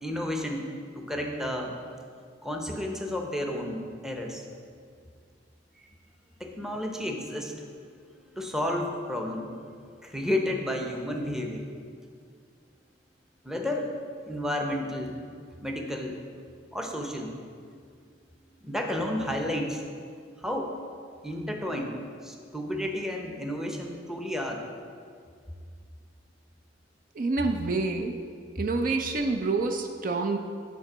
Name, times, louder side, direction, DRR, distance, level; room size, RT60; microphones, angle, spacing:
voice 1, 0.0-1.8 2.4-4.4 5.8-5.9 6.4-7.7 8.2-9.5 10.0-11.7 13.4-13.9 14.2-15.3 15.6-16.2 16.7-17.6 18.6-19.8 20.4-20.7 21.2-24.6 28.6-28.7, left 1 dB, 5° right, 1 dB, 0.7 m, -32 dB
voice 2, 27.2-28.2 28.6-30.4, right 3 dB, 45° right, 4 dB, 0.5 m, -27 dB
9.3 x 4.5 x 6.1 m, 2.2 s
head